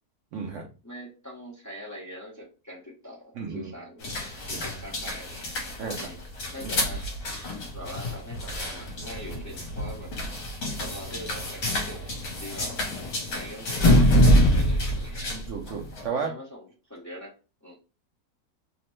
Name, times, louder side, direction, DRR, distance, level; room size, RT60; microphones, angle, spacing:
voice 1, 0.3-0.7 3.4-3.7 4.5-4.7 5.8-6.1 6.6-6.7 15.2-16.3, right 5 dB, 70° right, 1 dB, 0.7 m, -33 dB
voice 2, 0.8-4.2 4.5-5.5 5.9-6.2 6.5-7.0 7.7-10.1 10.8-12.1 12.4-12.8 13.3-15.3 16.2-17.3 17.6-17.8, equal, 20° left, -5 dB, 0.4 m, -42 dB
sound 1, 4.0-16.1, left 1 dB, 65° left, 1.2 m, -26 dB
2.9 x 2.0 x 3.0 m, 0.32 s
omnidirectional pair, 1.7 m